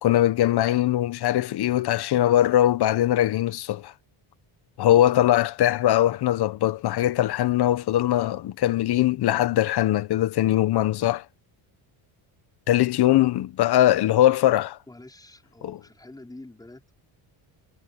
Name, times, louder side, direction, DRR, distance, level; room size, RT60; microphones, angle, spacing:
voice 1, 0.0-3.9 4.8-11.2 12.7-14.8 15.6-15.8, left 13 dB, 50° left, 1.0 m, -21 dB
voice 2, 14.9-16.9, left 2 dB, 10° left, 4.7 m, -46 dB
cardioid pair, 150°, 48 cm